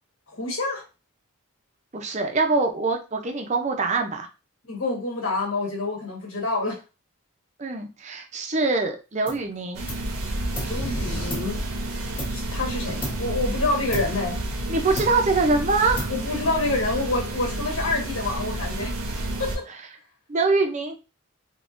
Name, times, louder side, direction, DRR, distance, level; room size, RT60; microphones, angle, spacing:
voice 1, 0.3-0.8 4.7-6.8 10.6-11.7 12.3-14.4 16.1-18.9 19.4-19.6, left 2 dB, 60° left, -1 dB, 1.3 m, -27 dB
voice 2, 1.9-4.3 7.6-9.9 14.7-16.1 20.3-21.0, right 3 dB, 30° right, 5 dB, 0.5 m, -24 dB
sound 1, 9.3-9.5 9.9-10.9 11.3-12.6 13.0-13.4 13.9-14.7 15.0-15.5 16.0-16.5, equal, 25° left, 1.0 m, -35 dB
sound 2, 9.7-19.6, right 1 dB, 75° right, 0.7 m, -30 dB
sound 3, 10.6-11.5, equal, 85° left, 1.1 m, -33 dB
3.5 x 2.9 x 2.5 m, 0.29 s
head